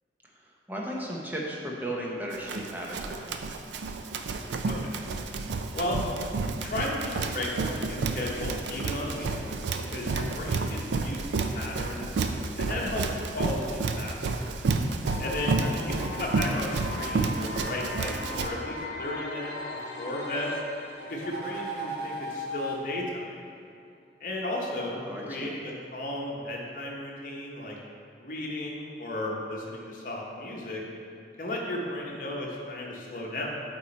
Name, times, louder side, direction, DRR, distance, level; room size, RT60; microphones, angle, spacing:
voice 1, 0.7-3.4 15.6-15.7 25.0-25.5, right 1 dB, 10° right, -3 dB, 0.6 m, -35 dB
Run, 2.3-18.5, right 3 dB, 80° right, 0.4 m, -31 dB
voice 2, 4.7-5.0 5.7-6.0 6.6-9.6 9.9-12.2 12.6-14.4 15.2-20.5 21.1-23.4 24.2-27.8 28.2-30.8 31.4-33.6, left 1 dB, 50° left, -3 dB, 0.8 m, -34 dB
sound 1, 15.0-23.0, left 3 dB, 75° left, 0.6 m, -39 dB
sound 2, 17.9-18.5 20.9-22.8, right 1 dB, 55° right, 1.1 m, -37 dB
8.0 x 3.1 x 4.3 m, 2.3 s
head